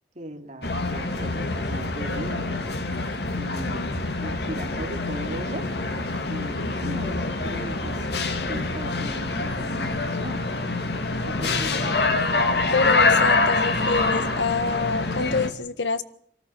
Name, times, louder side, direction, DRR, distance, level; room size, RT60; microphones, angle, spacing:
voice 1, 0.1-2.7 3.4-5.9 6.3-8.1 8.5-10.4 11.2-12.2, right 1 dB, 40° right, 3 dB, 3.4 m, -38 dB
sound 1, 0.6-15.5, left 3 dB, 65° left, 2.3 m, -25 dB
voice 2, 12.7-16.0, left 4 dB, 80° left, 12 dB, 1.5 m, -26 dB
26.5 x 14.0 x 9.3 m, 0.64 s
head